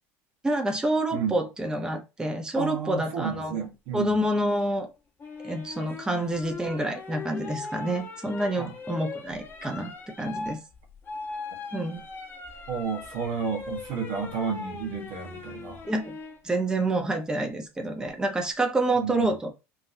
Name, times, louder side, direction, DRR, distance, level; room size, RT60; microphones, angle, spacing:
voice 1, 0.4-3.5 3.9-4.9 5.4-9.9 10.2-10.6 11.7-12.0 15.9-16.1 16.4-19.5, right 1 dB, 10° right, 0.8 m, -28 dB
voice 2, 2.5-4.1 8.6-8.7 12.7-15.8 19.0-19.3, right 6 dB, 75° right, 1.3 m, -31 dB
sound 1, 5.2-16.4 18.1-18.5, left 4 dB, 30° left, 0.9 m, -40 dB
3.8 x 2.5 x 2.7 m
supercardioid pair, 105°, 7 cm